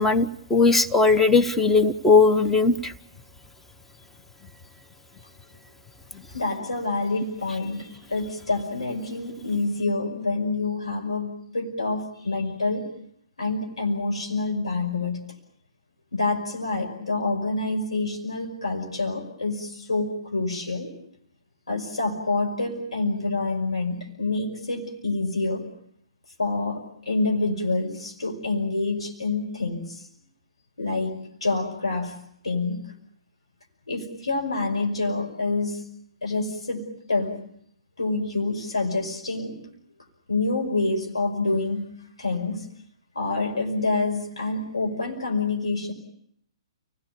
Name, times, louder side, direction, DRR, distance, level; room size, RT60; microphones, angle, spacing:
voice 1, 0.0-2.9, left 4 dB, 5° left, 6 dB, 1.1 m, -19 dB
voice 2, 6.3-12.9 13.4-15.2 16.1-20.9 21.7-25.6 26.4-26.8 27.1-30.1 30.8-32.1 32.4-32.8 33.9-35.8 36.2-37.4 38.0-39.6 40.3-41.9 42.2-42.7 43.1-45.9, left 3 dB, 75° left, 1 dB, 5.5 m, -27 dB
30.0 x 18.5 x 8.7 m, 0.70 s
figure-of-eight pair, 125°, 3 cm